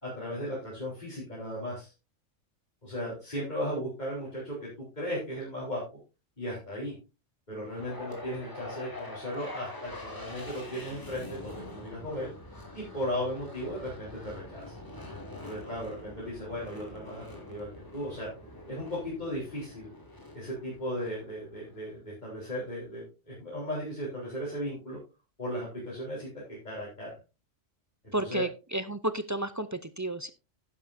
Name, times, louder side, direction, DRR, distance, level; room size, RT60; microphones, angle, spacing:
voice 1, 0.0-1.9 2.8-4.7 4.9-5.8 6.4-6.9 7.5-12.3 12.7-14.8 15.4-18.3 18.7-19.9 20.3-25.0 25.4-27.1 28.0-28.5, equal, 35° left, -7 dB, 4.4 m, -36 dB
sound 1, 7.7-21.9, left 2 dB, 15° left, 2.6 m, -45 dB
voice 2, 28.1-30.3, right 1 dB, 30° right, 12 dB, 0.3 m, -32 dB
11.0 x 10.5 x 2.7 m, 0.30 s
omnidirectional pair, 1.3 m